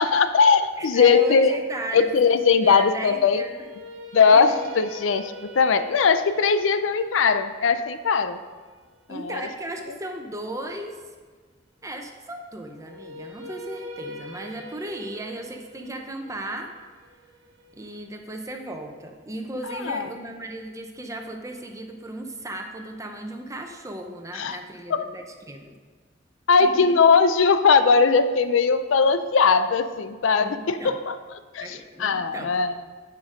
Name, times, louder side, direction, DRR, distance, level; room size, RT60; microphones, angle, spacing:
voice 1, 0.0-1.6 1.9-3.4 4.1-8.4 9.1-9.4 19.8-20.1 24.3-24.6 24.9-25.1 26.5-31.2 31.5-32.7, left 5 dB, 85° left, 11 dB, 0.5 m, -20 dB
voice 2, 0.8-2.1 2.5-3.7 4.3-4.6 9.1-11.0 11.8-16.7 17.7-25.8 26.6-27.0 30.4-31.0 31.6-32.6, right 1 dB, 15° right, 4 dB, 0.8 m, -36 dB
sound 1, 3.4-9.5 12.8-18.8, equal, 75° right, 1.0 m, -43 dB
8.7 x 5.3 x 5.1 m, 1.4 s
head